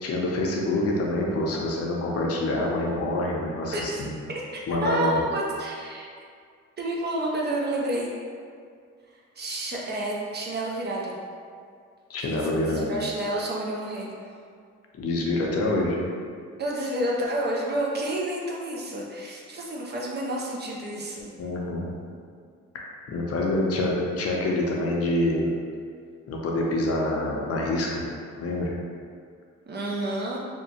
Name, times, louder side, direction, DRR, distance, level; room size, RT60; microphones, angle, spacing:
voice 1, 0.0-4.1 4.7-5.2 12.1-12.9 14.9-16.0 21.4-21.9 22.7-25.5 26.3-28.0 28.4-28.7, left 2 dB, 50° left, -2 dB, 0.5 m, -26 dB
voice 2, 3.7-4.0 4.3-6.1 6.8-8.1 9.4-11.2 12.2-14.3 16.6-21.2 29.7-30.4, right 1 dB, 35° right, -3 dB, 0.5 m, -30 dB
2.8 x 2.1 x 2.7 m, 2.2 s
cardioid pair, 90°, 30 cm